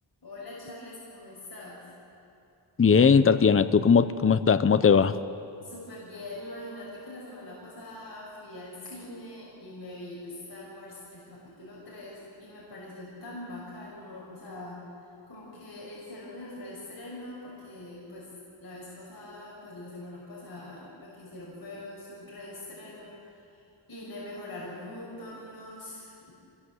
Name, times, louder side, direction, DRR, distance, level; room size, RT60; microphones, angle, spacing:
voice 1, 0.2-1.9 5.6-14.8 15.3-18.3 18.6-26.3, left 1 dB, 50° left, -6 dB, 6.2 m, -43 dB
voice 2, 2.8-5.2, left 6 dB, 30° left, 12 dB, 0.7 m, -19 dB
26.0 x 21.5 x 7.9 m, 2.7 s
wide cardioid pair, 110°, 46 cm